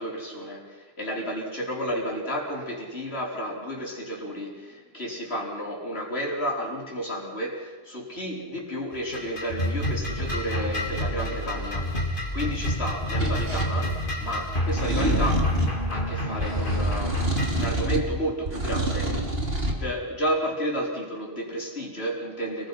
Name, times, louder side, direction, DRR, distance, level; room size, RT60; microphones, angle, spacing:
voice 1, 0.0-17.2 17.5-19.2 19.7-22.7, equal, 75° left, -1 dB, 5.2 m, -32 dB
sound 1, 8.9-17.7, equal, 55° left, 3.8 m, -28 dB
sound 2, 13.2-13.7 14.7-15.8 16.4-18.1 18.5-19.8, right 1 dB, 65° right, 3.5 m, -27 dB
29.5 x 20.5 x 5.9 m, 1.4 s
omnidirectional pair, 1.1 m